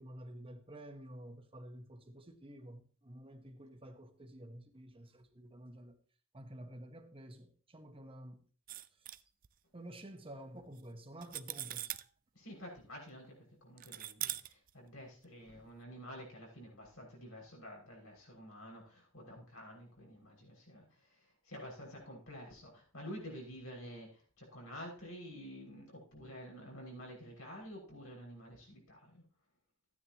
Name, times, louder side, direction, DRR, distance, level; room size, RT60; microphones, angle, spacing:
voice 1, 0.0-6.0 6.3-8.4 9.0-9.1 9.7-11.9, right 1 dB, 25° right, 1.2 m, -51 dB
sound 1, 8.7-9.5 10.8-10.9 11.2-12.1 13.8-14.7, right 14 dB, 40° right, 0.4 m, -41 dB
voice 2, 12.3-20.9 21.5-24.1 24.4-29.2, equal, 90° left, 6.1 m, -49 dB
14.0 x 9.7 x 3.0 m
head